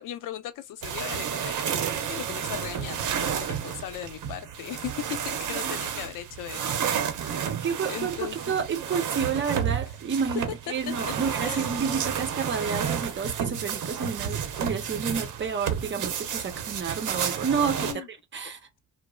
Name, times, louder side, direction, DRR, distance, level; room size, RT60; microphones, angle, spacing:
voice 1, 0.0-7.5 7.9-8.4 10.7-11.1 11.4-11.7 17.7-18.1, left 11 dB, 85° left, 0.6 m, -38 dB
sound 1, 0.8-17.9, right 8 dB, 70° right, 0.7 m, -31 dB
voice 2, 7.5-17.9 18.3-18.6, right 6 dB, 35° right, 0.7 m, -30 dB
2.9 x 2.0 x 2.2 m
cardioid pair, 120°, 31 cm